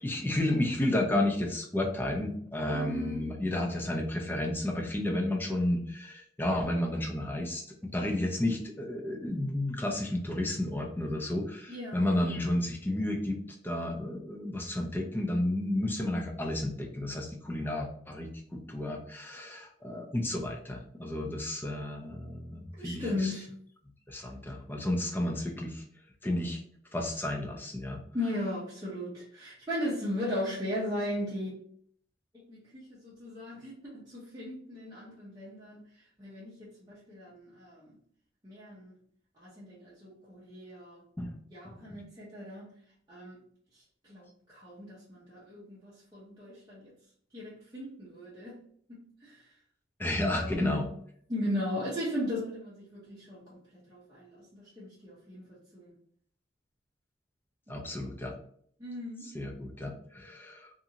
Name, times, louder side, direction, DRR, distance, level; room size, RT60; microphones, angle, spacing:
voice 1, 0.0-7.6 7.9-23.4 24.1-25.8 26.2-26.6 26.9-28.0 41.2-41.4 41.6-41.8 50.0-50.9 57.7-58.3 59.2-60.7, left 1 dB, 10° left, 1 dB, 0.4 m, -32 dB
voice 2, 2.7-3.2 11.7-12.1 22.8-23.5 28.1-31.6 32.5-35.8 36.2-37.9 38.4-38.9 39.4-41.0 41.5-42.7 43.1-43.4 44.1-46.9 47.3-48.5 48.9-49.4 50.2-50.8 51.3-53.6 53.9-55.9 57.7-57.9 58.8-59.3, left 1 dB, 20° right, -9 dB, 0.7 m, -37 dB
2.5 x 2.5 x 2.8 m, 0.63 s
head